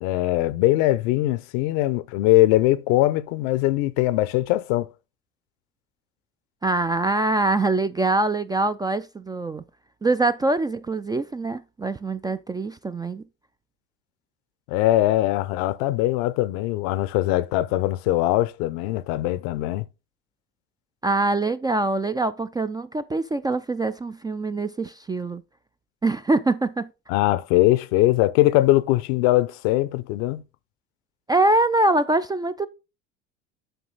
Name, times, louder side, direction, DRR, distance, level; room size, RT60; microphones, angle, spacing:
voice 1, 0.0-4.9 14.7-19.8 27.1-30.4, left 16 dB, 65° left, 0.7 m, -21 dB
voice 2, 6.6-9.6 10.0-13.2 21.0-25.4 26.0-26.9 31.3-32.7, right 2 dB, 10° right, 0.3 m, -24 dB
8.0 x 5.3 x 3.9 m
hypercardioid pair, 70°, 36 cm